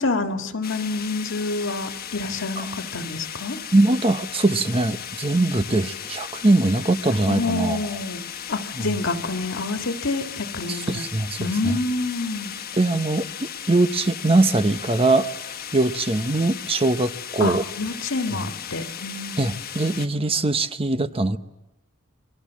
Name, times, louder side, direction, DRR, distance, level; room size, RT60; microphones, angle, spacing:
voice 1, 0.0-3.6 7.3-8.2 8.5-11.0 11.4-12.5 17.4-19.4, left 3 dB, 65° left, 7 dB, 1.8 m, -27 dB
sound 1, 0.6-20.1, left 9 dB, 45° left, 1.3 m, -36 dB
voice 2, 3.7-7.8 8.8-8.9 10.7-11.8 12.8-15.3 15.7-17.6 18.3-18.4 19.4-21.4, right 2 dB, 30° right, 11 dB, 0.9 m, -22 dB
28.5 x 22.5 x 7.4 m, 0.93 s
head